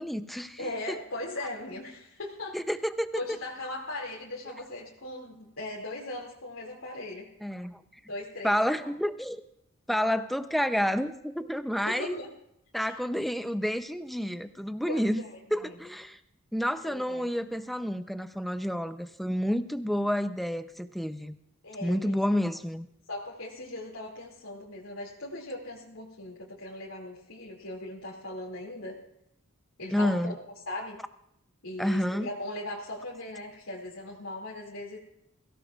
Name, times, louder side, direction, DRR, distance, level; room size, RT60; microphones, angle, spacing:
voice 1, 0.0-1.0 2.5-3.4 7.4-7.8 8.4-9.4 9.9-12.2 12.7-15.2 15.5-16.2 16.5-21.4 21.8-22.9 29.9-30.3 31.8-32.3, equal, ahead, 9 dB, 0.6 m, -29 dB
voice 2, 0.6-2.6 3.1-7.3 8.1-8.6 11.8-12.3 12.8-13.0 14.9-15.3 15.6-15.7 16.8-17.3 21.6-22.2 23.1-29.0 29.8-30.3 30.7-31.0 31.6-35.0, left 1 dB, 80° left, -4 dB, 2.6 m, -39 dB
22.5 x 16.0 x 2.4 m, 0.78 s
head